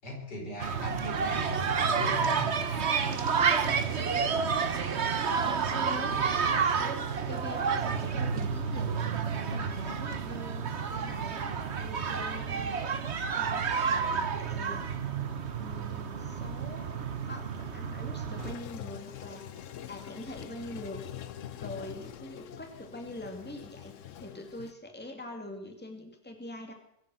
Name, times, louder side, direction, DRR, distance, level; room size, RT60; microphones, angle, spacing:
voice 1, 0.0-2.6, left 1 dB, 90° left, 0 dB, 5.6 m, -39 dB
sound 1, 0.6-18.5, right 6 dB, 45° right, 1.3 m, -30 dB
voice 2, 5.4-8.9 9.3-12.8 13.3-14.9 15.6-16.9 17.3-21.0 21.6-26.7, left 1 dB, 5° left, 3 dB, 2.4 m, -44 dB
Toilet flush, 18.4-24.7, left 10 dB, 60° left, 0.9 m, -44 dB
22.0 x 8.2 x 7.9 m, 0.77 s
omnidirectional pair, 1.8 m